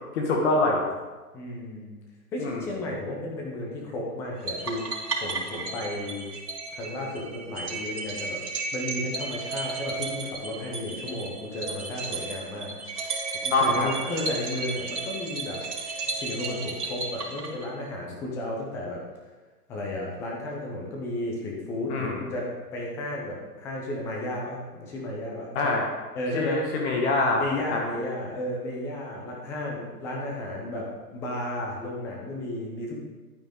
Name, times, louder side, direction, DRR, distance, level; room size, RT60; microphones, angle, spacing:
voice 1, 0.1-0.8 2.4-2.6 13.5-13.9 21.9-22.2 25.5-25.9 26.3-27.8, left 2 dB, 45° left, 0 dB, 1.6 m, -24 dB
voice 2, 1.3-2.0 2.3-4.8 5.2-6.3 6.7-8.4 8.7-12.7 13.0-13.1 13.4-15.6 16.1-19.0 19.7-25.7 26.1-26.6 27.4-33.0, left 1 dB, 5° left, -2 dB, 0.5 m, -33 dB
sound 1, 4.5-17.9, right 3 dB, 70° right, 3.3 m, -34 dB
11.5 x 9.0 x 3.6 m, 1.3 s
hypercardioid pair, 140°, 47 cm